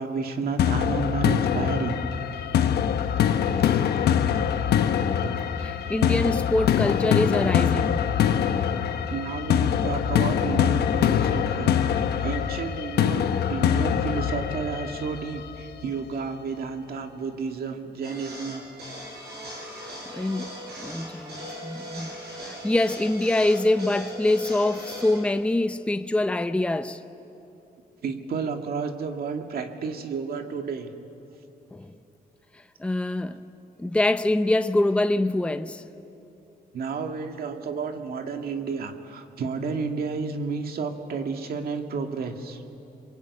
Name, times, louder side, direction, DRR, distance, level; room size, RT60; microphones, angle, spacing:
voice 1, 0.0-2.0 3.7-3.8 9.1-18.7 28.0-30.9 36.7-42.6, right 5 dB, 70° right, 2.1 m, -31 dB
sound 1, 0.6-15.5, left 9 dB, 85° left, 1.1 m, -24 dB
voice 2, 5.6-8.0 20.1-22.2 22.4-27.0 31.7-31.9 32.8-33.4 33.8-35.8, left 1 dB, 5° left, 0.7 m, -25 dB
sound 2, 18.0-25.2, equal, 85° right, 7.9 m, -39 dB
28.0 x 22.5 x 8.5 m
cardioid pair, 120°, 16 cm